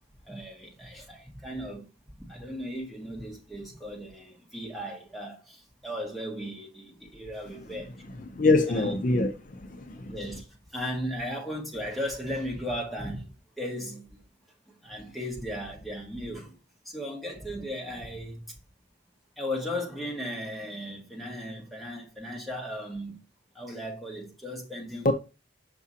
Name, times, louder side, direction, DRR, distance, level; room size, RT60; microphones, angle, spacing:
voice 1, 0.3-1.9 2.3-7.9 8.7-8.9 10.1-10.5 10.7-13.3 13.6-14.0 14.8-16.5 16.8-18.4 19.4-23.2 23.5-25.1, equal, ahead, 1.6 m, -36 dB
voice 2, 8.3-10.1 25.0-25.1, left 2 dB, 45° left, 0.5 m, -24 dB
6.0 x 5.7 x 2.8 m
head